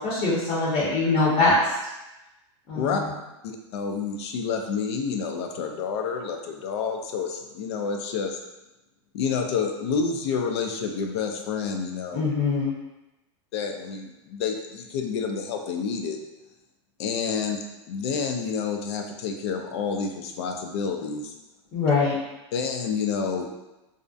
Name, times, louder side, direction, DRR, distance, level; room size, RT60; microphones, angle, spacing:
voice 1, 0.0-1.5 2.7-2.9 12.1-12.7 21.7-22.2, left 3 dB, 35° left, -8 dB, 0.7 m, -23 dB
voice 2, 3.4-8.4 9.1-12.3 13.5-16.2 17.0-17.6 17.9-21.3 22.5-23.5, left 5 dB, 65° left, 3 dB, 0.4 m, -29 dB
2.4 x 2.1 x 2.5 m, 0.99 s
supercardioid pair, 140°, 15 cm